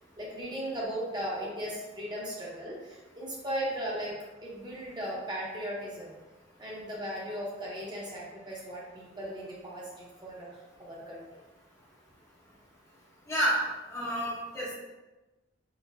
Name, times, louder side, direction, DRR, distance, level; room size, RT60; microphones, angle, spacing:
voice 1, 0.2-4.1 4.4-6.1 6.6-11.2, equal, 25° right, -5 dB, 0.7 m, -37 dB
voice 2, 13.3-13.6 13.9-14.7, equal, 15° left, -7 dB, 0.7 m, -29 dB
3.9 x 2.8 x 2.6 m, 1.1 s
head